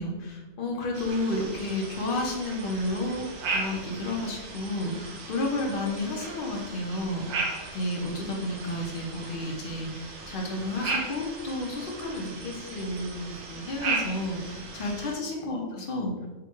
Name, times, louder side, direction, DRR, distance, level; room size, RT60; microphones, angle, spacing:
voice 1, 0.0-16.3, left 1 dB, 50° left, -1 dB, 0.7 m, -31 dB
sound 1, 0.9-15.2, right 3 dB, 80° right, 1.2 m, -36 dB
3.8 x 2.2 x 4.4 m, 1.2 s
omnidirectional pair, 1.6 m